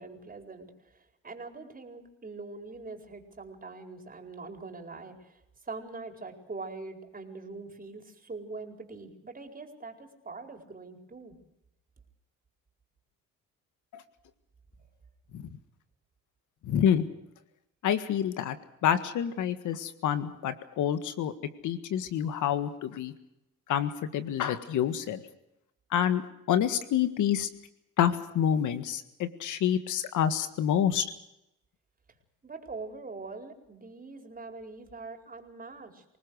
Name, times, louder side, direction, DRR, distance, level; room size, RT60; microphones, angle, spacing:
voice 1, 0.0-11.4 32.4-36.0, right 3 dB, 30° right, 4 dB, 4.7 m, -43 dB
voice 2, 16.6-17.1 17.8-18.6 18.8-21.3 21.6-23.1 23.7-25.2 25.9-26.2 26.5-27.5 28.0-31.1, left 9 dB, 80° left, 11 dB, 1.7 m, -27 dB
26.0 x 19.0 x 6.5 m, 0.85 s
cardioid pair, 90°, 30 cm